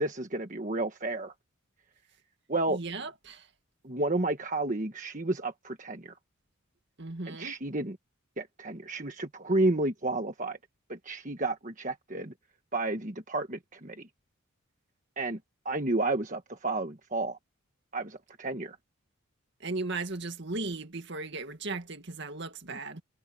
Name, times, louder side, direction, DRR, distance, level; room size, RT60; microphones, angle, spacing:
voice 1, 0.0-1.3 2.5-2.8 3.8-6.2 7.3-8.0 8.4-10.6 10.9-12.3 12.7-14.1 15.2-15.4 15.6-17.4 17.9-18.8, right 2 dB, 35° right, 1.4 m, -31 dB
voice 2, 2.7-3.5 7.0-7.6 19.6-23.0, right 3 dB, 55° right, 2.1 m, -36 dB
head